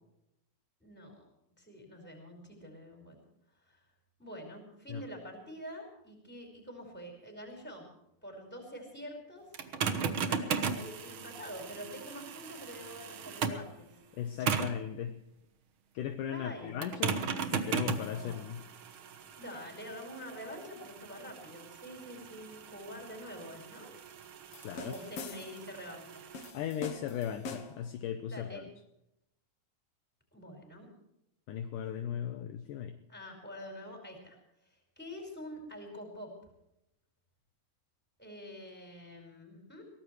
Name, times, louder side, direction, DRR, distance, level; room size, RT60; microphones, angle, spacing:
voice 1, 0.8-1.3 1.6-3.2 3.6-3.8 4.2-7.9 8.2-9.5 10.2-14.0 16.3-18.5 19.4-23.9 24.7-26.3 28.3-28.7 30.3-30.9 33.1-36.3 38.2-39.8, equal, 5° left, 0 dB, 5.0 m, -46 dB
sound 1, 9.5-13.7 14.5-14.9 16.8-26.5, right 6 dB, 80° right, 1.1 m, -37 dB
voice 2, 14.2-15.2 15.9-17.2 17.5-18.6 24.6-24.9 26.5-28.6 31.5-33.0, left 9 dB, 75° left, 8 dB, 2.2 m, -37 dB
sound 2, 24.5-25.7 26.3-27.9, left 3 dB, 55° left, 1.9 m, -44 dB
23.0 x 18.0 x 3.2 m, 0.83 s
omnidirectional pair, 4.2 m